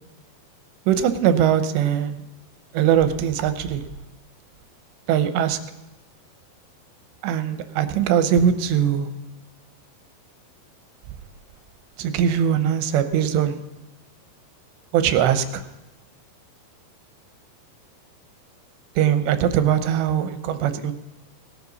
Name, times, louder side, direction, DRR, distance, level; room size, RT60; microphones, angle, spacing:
voice 1, 0.9-2.2 2.7-3.8 5.1-5.6 7.2-9.1 12.0-13.6 14.9-15.6 19.0-20.9, right 9 dB, 85° right, 10 dB, 3.1 m, -21 dB
18.5 x 12.0 x 4.1 m, 1.0 s
omnidirectional pair, 4.9 m